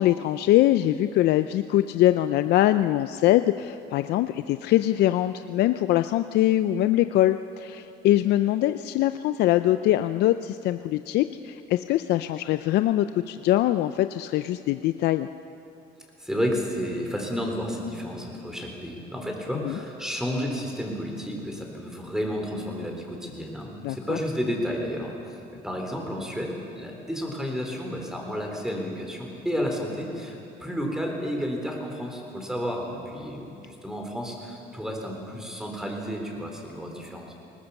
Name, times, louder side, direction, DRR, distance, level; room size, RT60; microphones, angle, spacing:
voice 1, 0.0-15.3 19.6-19.8 23.8-24.2, left 14 dB, 75° left, 11 dB, 0.5 m, -23 dB
voice 2, 16.2-25.1 25.6-37.3, equal, 5° right, 1 dB, 3.9 m, -31 dB
20.0 x 19.0 x 7.1 m, 2.8 s
cardioid pair, 110°, 17 cm